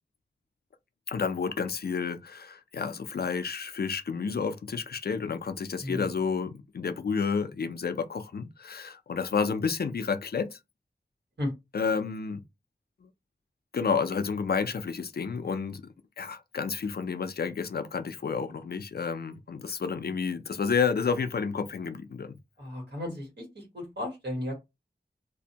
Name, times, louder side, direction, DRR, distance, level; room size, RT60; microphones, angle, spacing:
voice 1, 1.1-10.6 11.7-12.4 13.7-15.8 16.2-22.4, left 5 dB, 65° left, 0.4 m, -30 dB
voice 2, 5.8-6.1 11.4-11.5 22.6-24.5, left 1 dB, 85° right, 1.4 m, -34 dB
2.5 x 2.1 x 2.7 m
wide cardioid pair, 60°, 17 cm